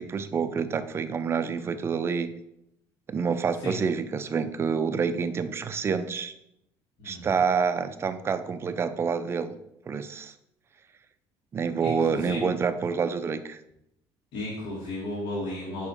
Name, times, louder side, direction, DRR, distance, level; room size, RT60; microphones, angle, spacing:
voice 1, 0.0-2.3 3.1-6.3 7.0-9.6 9.9-10.3 11.5-13.6, right 6 dB, 25° right, 11 dB, 0.5 m, -27 dB
voice 2, 11.8-12.4 14.3-15.9, left 1 dB, 70° left, -6 dB, 2.0 m, -34 dB
5.5 x 4.8 x 4.3 m, 0.80 s
cardioid pair, 130°, 9 cm